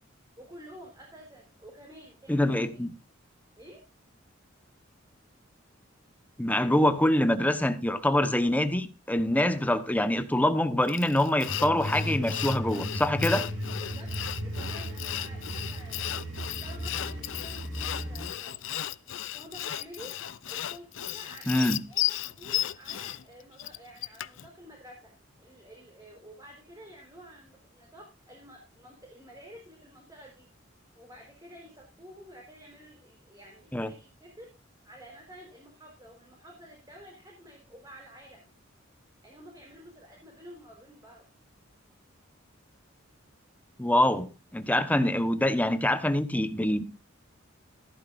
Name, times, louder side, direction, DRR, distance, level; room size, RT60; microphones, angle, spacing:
voice 1, 0.4-2.6 3.6-3.8 13.8-14.1 14.4-16.0 16.4-18.6 19.3-20.1 20.5-25.1 25.4-30.5 30.9-34.5 34.8-38.5 39.2-41.2, equal, 20° right, 4.3 m, -50 dB
voice 2, 2.3-2.9 6.4-13.5 21.5-21.8 33.7-33.9 43.8-46.8, left 1 dB, 10° left, 1.2 m, -25 dB
Sawing, 10.9-24.5, left 13 dB, 70° left, 0.5 m, -35 dB
sound 1, 11.5-18.3, equal, 75° right, 7.2 m, -35 dB
15.0 x 13.0 x 2.6 m
head